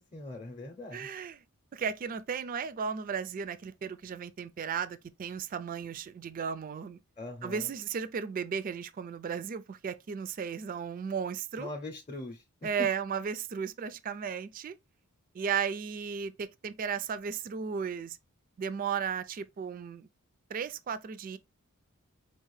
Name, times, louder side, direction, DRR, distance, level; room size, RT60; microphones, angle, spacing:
voice 1, 0.1-1.1 7.2-7.7 11.6-12.4, left 2 dB, 25° left, 0.6 m, -41 dB
voice 2, 0.9-1.4 1.7-7.0 7.4-11.7 12.6-14.7 15.3-18.2 18.6-20.1 20.5-21.4, right 6 dB, 40° right, 0.3 m, -35 dB
4.6 x 2.4 x 3.1 m
head